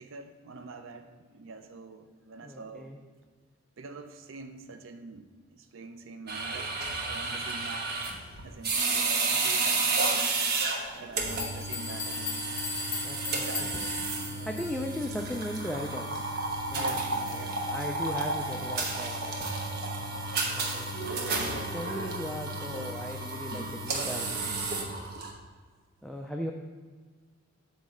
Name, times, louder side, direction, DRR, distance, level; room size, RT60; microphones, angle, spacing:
voice 1, 0.0-2.9 3.8-6.7 7.0-8.0 8.4-12.4 13.3-13.7 14.2-14.5 16.7-17.0 17.4-17.8, right 3 dB, 70° right, 7 dB, 0.5 m, -45 dB
voice 2, 2.4-3.0 13.0-13.9 14.4-16.3 16.7-19.6 20.5-24.6 26.0-26.5, equal, ahead, 1 dB, 0.4 m, -38 dB
sound 1, 6.3-25.3, right 3 dB, 55° right, 1.1 m, -31 dB
sound 2, 10.8-10.9 11.3-15.0, left 7 dB, 30° left, 0.7 m, -38 dB
8.5 x 3.2 x 6.4 m, 1.5 s
head